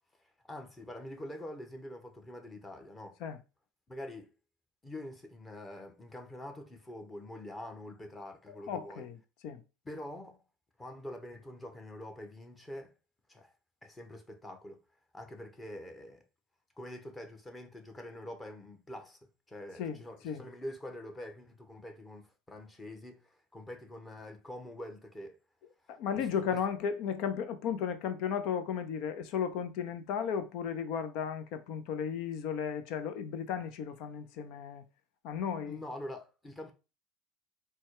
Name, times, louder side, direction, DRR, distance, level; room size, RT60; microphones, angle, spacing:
voice 1, 0.5-3.2 3.9-4.3 4.8-9.1 9.8-10.4 10.8-12.9 13.3-13.5 13.8-14.8 15.1-16.2 16.8-19.2 19.5-25.4 25.9-26.6 35.7-36.7, left 1 dB, 15° left, 1.1 m, -45 dB
voice 2, 8.5-9.6 19.8-20.5 25.9-34.8 35.2-35.8, left 7 dB, 65° left, 0.6 m, -35 dB
4.2 x 2.3 x 4.6 m
hypercardioid pair, 90°, 0 cm